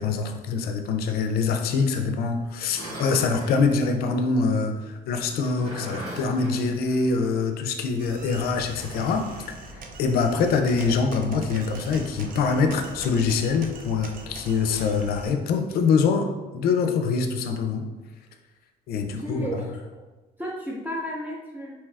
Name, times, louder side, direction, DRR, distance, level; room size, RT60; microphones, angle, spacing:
voice 1, 0.0-9.3 9.7-17.9 18.9-19.5, left 5 dB, 65° left, 6 dB, 0.4 m, -24 dB
sound 1, 2.6-3.7 5.2-7.5 7.8-7.9 8.6-9.5 12.0-13.0 14.4-15.0, right 1 dB, 80° right, 1.4 m, -40 dB
sound 2, 8.0-15.3, right 2 dB, 55° right, 0.4 m, -41 dB
voice 2, 19.2-19.7 20.4-21.7, equal, 10° right, -5 dB, 0.6 m, -33 dB
2.8 x 2.3 x 3.3 m, 1.2 s
cardioid pair, 110°, 17 cm